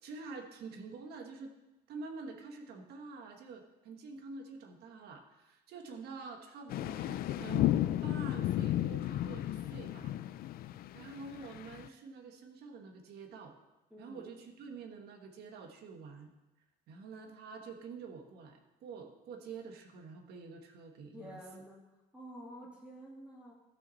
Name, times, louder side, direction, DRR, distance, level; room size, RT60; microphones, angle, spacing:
voice 1, 0.0-1.5 1.9-7.7 8.0-10.1 10.9-13.6 14.0-16.3 16.9-21.4, right 4 dB, 70° right, 4 dB, 1.5 m, -47 dB
sound 1, 6.7-11.9, left 13 dB, 60° left, 0.4 m, -33 dB
voice 2, 13.9-14.2 21.1-21.8 22.1-23.5, equal, 5° right, -4 dB, 2.5 m, -49 dB
13.5 x 6.0 x 4.1 m, 1.0 s
cardioid pair, 110°, 17 cm